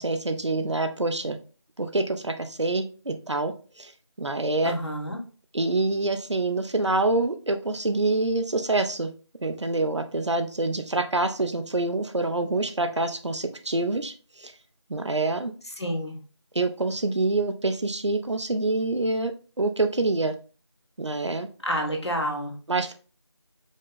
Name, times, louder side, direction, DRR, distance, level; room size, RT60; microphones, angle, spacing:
voice 1, 0.0-1.4 1.8-3.9 4.2-4.7 5.5-9.1 9.4-14.5 14.9-15.5 16.5-19.3 19.6-20.3 21.0-21.5 22.7-22.9, right 2 dB, 75° right, 7 dB, 0.7 m, -26 dB
voice 2, 4.6-5.2 15.7-16.2 21.6-22.5, equal, 65° left, 1 dB, 1.3 m, -29 dB
5.1 x 2.1 x 3.9 m, 0.37 s
figure-of-eight pair, 175°, 15 cm